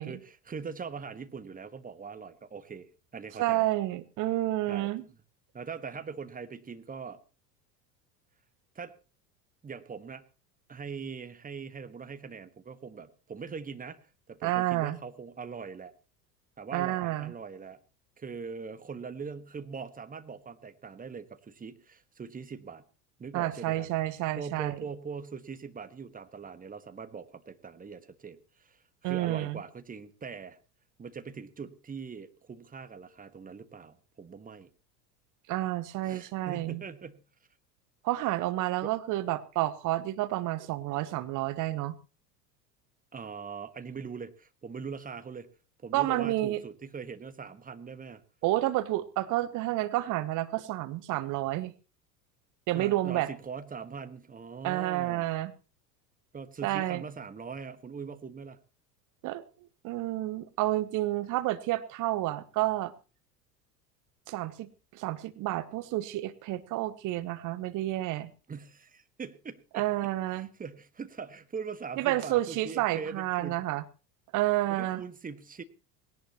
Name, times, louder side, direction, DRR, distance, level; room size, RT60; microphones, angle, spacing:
voice 1, 0.0-3.7 4.7-5.2 5.5-7.2 8.7-8.9 9.6-10.2 10.7-15.9 16.6-17.8 18.2-22.8 23.2-23.9 24.4-30.6 31.0-34.7 36.0-37.2 38.8-38.9 43.1-45.5 45.8-48.2 52.7-55.3 56.3-58.6 68.5-69.9 70.3-73.6 74.7-75.6, right 5 dB, 15° right, 10 dB, 1.4 m, -41 dB
voice 2, 3.4-5.0 14.4-15.0 16.7-17.3 23.3-24.7 29.0-29.6 35.5-36.8 38.0-42.0 45.9-46.6 48.4-51.7 52.7-53.3 54.6-55.5 56.6-57.0 59.2-59.4 59.8-62.9 64.3-68.3 69.7-70.5 72.0-73.8 74.3-75.0, right 16 dB, 40° right, 15 dB, 1.0 m, -30 dB
19.0 x 18.0 x 3.0 m, 0.33 s
figure-of-eight pair, 75°, 49 cm